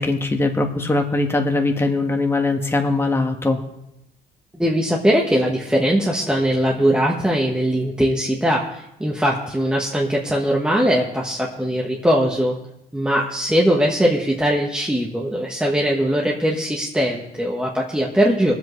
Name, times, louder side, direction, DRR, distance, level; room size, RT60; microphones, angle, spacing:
voice 1, 0.0-3.6, left 2 dB, 15° left, 3 dB, 1.5 m, -21 dB
voice 2, 4.5-12.6 12.9-18.5, equal, 5° right, -2 dB, 1.3 m, -20 dB
22.5 x 7.9 x 3.2 m, 0.85 s
cardioid pair, 110°, 17 cm